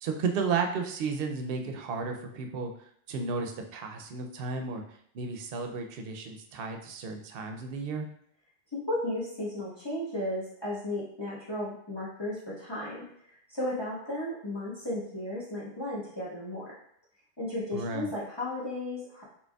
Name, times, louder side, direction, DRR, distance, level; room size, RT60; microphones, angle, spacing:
voice 1, 0.0-2.7 3.1-4.8 5.1-8.1 17.7-18.1, right 4 dB, 70° right, 4 dB, 0.8 m, -33 dB
voice 2, 8.7-16.7 17.4-19.2, left 1 dB, 25° left, -7 dB, 1.2 m, -34 dB
5.1 x 3.4 x 2.2 m, 0.66 s
omnidirectional pair, 1.0 m